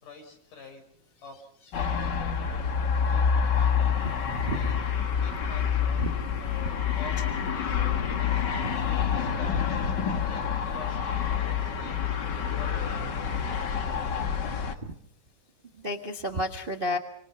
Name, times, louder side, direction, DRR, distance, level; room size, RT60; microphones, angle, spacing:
voice 1, 0.0-2.8 3.1-3.2 3.5-3.8 4.5-4.7 5.2-6.1 6.4-7.2 7.5-8.4 8.9-9.6 10.2-10.4 10.7-11.3 11.6-12.0 12.5-14.8, left 4 dB, 80° left, 5 dB, 7.4 m, -47 dB
sound 1, 1.7-14.7, left 7 dB, 45° left, 1.6 m, -27 dB
voice 2, 4.3-4.7 6.0-6.1 6.6-6.7 8.6-8.8 15.8-17.0, equal, 30° right, 5 dB, 0.9 m, -31 dB
28.5 x 25.5 x 5.9 m, 0.67 s
omnidirectional pair, 3.6 m